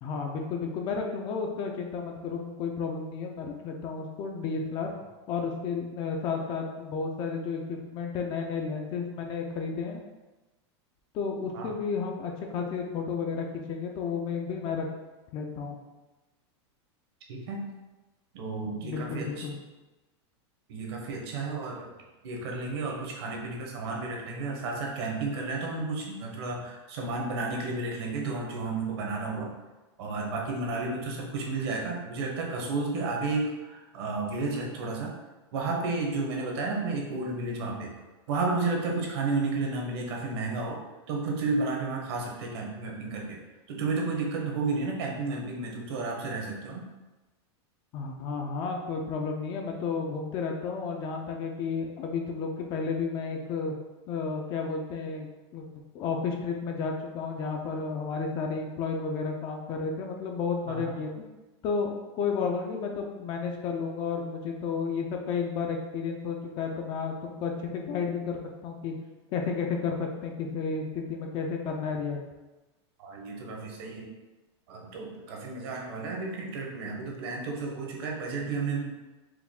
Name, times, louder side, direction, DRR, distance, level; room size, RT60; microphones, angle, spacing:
voice 1, 0.0-4.9 5.3-10.0 11.1-14.9 15.3-15.8 18.8-19.6 47.9-53.7 54.1-55.7 55.9-61.2 61.6-68.9 69.3-72.2, left 5 dB, 30° left, 2 dB, 0.4 m, -32 dB
voice 2, 17.3-17.7 18.3-19.5 20.7-21.9 22.2-29.5 30.0-35.1 35.5-38.0 38.3-40.8 41.1-43.4 43.7-46.9 60.7-61.0 73.0-74.1 74.7-78.8, right 3 dB, 60° right, -1 dB, 1.1 m, -32 dB
4.7 x 2.3 x 3.6 m, 1.1 s
supercardioid pair, 155°, 15 cm